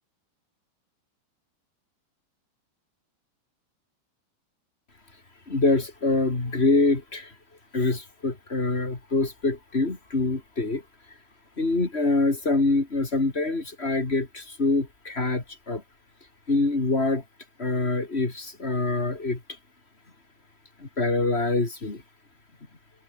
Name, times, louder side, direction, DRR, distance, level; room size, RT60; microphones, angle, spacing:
voice 1, 5.5-7.3 7.7-10.8 11.6-15.8 16.5-17.2 17.6-19.4 20.8-22.0, left 3 dB, 20° left, 2.0 m, -25 dB
open air
omnidirectional pair, 5.9 m